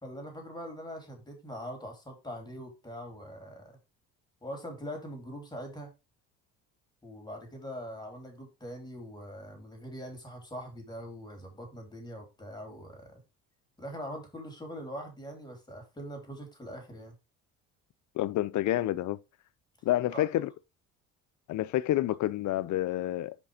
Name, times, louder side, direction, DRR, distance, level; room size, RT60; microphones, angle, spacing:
voice 1, 0.0-3.8 4.4-5.9 7.0-13.2 13.8-17.1 20.1-20.3, equal, 10° left, 3.1 m, -42 dB
voice 2, 18.2-19.2 19.8-20.5 21.5-23.4, left 14 dB, 55° left, 0.6 m, -28 dB
5.2 x 5.2 x 4.9 m
supercardioid pair, 85°, 35 cm